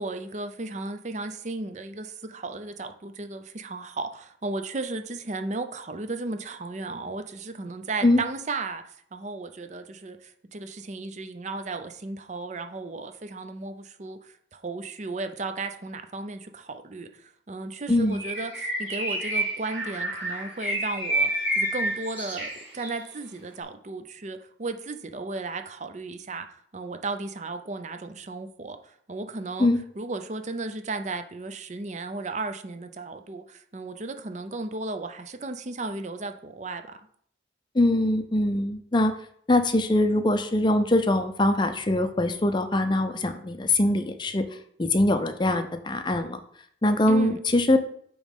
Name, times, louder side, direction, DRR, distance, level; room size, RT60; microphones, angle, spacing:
voice 1, 0.0-8.8 9.1-26.5 26.7-29.7 30.0-37.1 47.1-47.4, right 3 dB, 40° right, 8 dB, 0.5 m, -35 dB
voice 2, 17.9-18.2 29.6-29.8 37.7-39.1 39.5-44.4 44.8-46.4 46.8-47.8, left 1 dB, 25° left, 8 dB, 0.5 m, -22 dB
Bird, 18.1-23.0, right 1 dB, 10° right, 2.4 m, -29 dB
8.6 x 3.1 x 5.3 m, 0.64 s
head